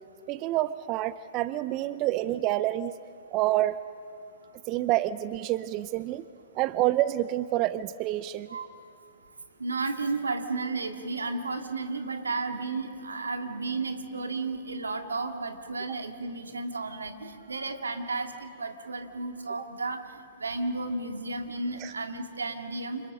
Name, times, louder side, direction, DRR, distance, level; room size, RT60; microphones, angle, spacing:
voice 1, 0.3-3.0 3.3-3.8 4.7-6.2 6.5-8.5 21.8-21.9, right 15 dB, 35° right, 16 dB, 0.6 m, -28 dB
voice 2, 9.6-20.0 20.4-23.0, right 3 dB, 85° right, 5 dB, 2.2 m, -33 dB
29.0 x 26.5 x 6.3 m, 2.6 s
hypercardioid pair, 115°, 0 cm